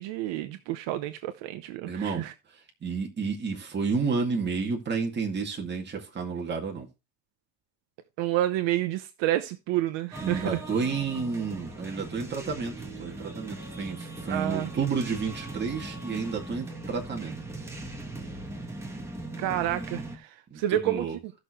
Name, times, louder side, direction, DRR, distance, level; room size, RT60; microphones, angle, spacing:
voice 1, 0.0-2.3 8.2-10.6 14.3-14.7 19.4-21.3, right 14 dB, 65° right, 1.0 m, -29 dB
voice 2, 1.8-2.3 2.8-6.9 10.2-12.7 13.0-17.3 19.3-19.6 20.5-21.2, right 5 dB, 20° right, 2.1 m, -31 dB
sound 1, 10.1-20.2, right 2 dB, 5° right, 1.6 m, -39 dB
15.5 x 6.5 x 3.0 m
cardioid pair, 165°, 49 cm